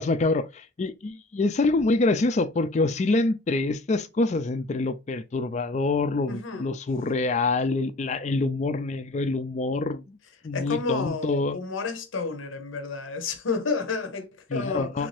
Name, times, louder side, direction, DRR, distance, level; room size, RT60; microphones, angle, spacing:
voice 1, 0.0-10.2 10.4-11.6 14.5-15.1, left 3 dB, 35° left, 0.4 m, -26 dB
voice 2, 6.3-6.7 10.5-15.1, left 4 dB, 85° left, 0.7 m, -31 dB
3.3 x 2.6 x 3.2 m
head